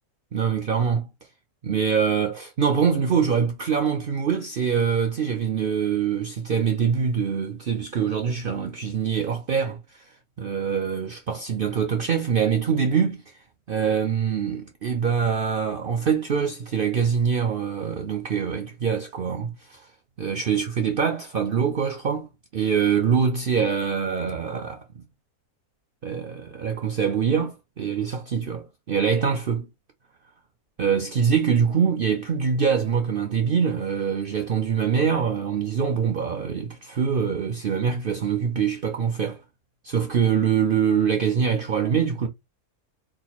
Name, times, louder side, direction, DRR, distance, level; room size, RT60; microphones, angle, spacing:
voice 1, 0.3-1.1 1.6-10.1 10.4-13.2 13.7-19.9 20.2-25.0 26.0-29.7 30.8-39.4 39.8-42.3, right 7 dB, 75° right, 0.5 m, -24 dB
4.9 x 2.3 x 2.9 m
omnidirectional pair, 1.6 m